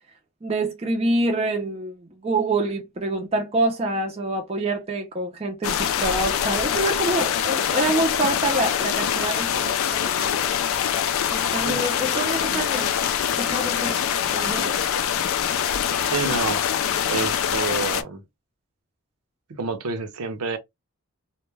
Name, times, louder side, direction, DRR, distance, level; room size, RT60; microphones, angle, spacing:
voice 1, 0.4-10.5 11.3-13.0 13.4-14.0 14.3-14.8, right 2 dB, 25° right, 0.4 m, -26 dB
sound 1, 5.6-18.0, left 9 dB, 70° left, 0.3 m, -24 dB
voice 2, 16.1-16.6 17.1-18.2 19.5-20.6, right 4 dB, 90° right, 0.6 m, -28 dB
2.2 x 2.1 x 3.1 m
head